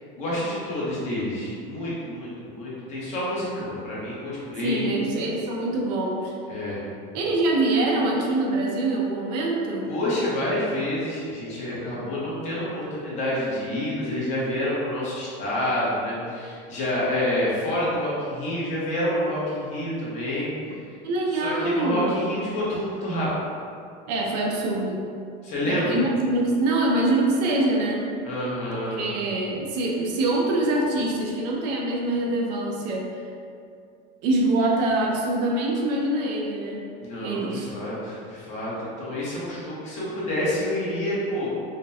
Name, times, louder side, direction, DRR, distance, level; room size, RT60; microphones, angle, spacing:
voice 1, 0.2-5.0 6.5-6.8 9.9-20.5 21.3-23.3 25.4-26.0 28.2-29.1 37.0-41.5, left 1 dB, 35° left, -8 dB, 0.9 m, -28 dB
voice 2, 4.6-6.3 7.1-9.9 21.0-22.2 24.1-25.0 25.6-28.0 29.0-33.1 34.2-36.8 37.2-37.7, right 2 dB, 80° right, -1 dB, 0.7 m, -24 dB
5.1 x 2.1 x 2.7 m, 2.4 s
cardioid pair, 180°, 21 cm